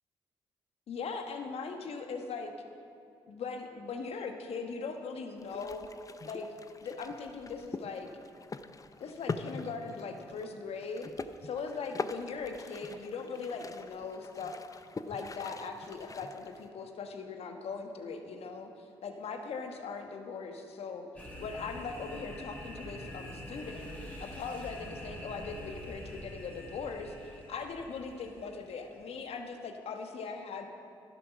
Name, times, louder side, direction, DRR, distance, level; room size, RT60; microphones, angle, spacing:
voice 1, 0.9-2.5 3.3-5.9 6.2-6.5 6.8-8.1 9.0-11.1 11.4-14.6 15.0-21.1 21.4-30.7, left 5 dB, 65° left, 5 dB, 1.3 m, -40 dB
sound 1, 5.4-16.7, left 3 dB, 30° left, 0.7 m, -43 dB
sound 2, 21.2-29.1, left 1 dB, 15° left, 3.6 m, -45 dB
11.5 x 11.0 x 6.0 m, 2.5 s
hypercardioid pair, 50°, 11 cm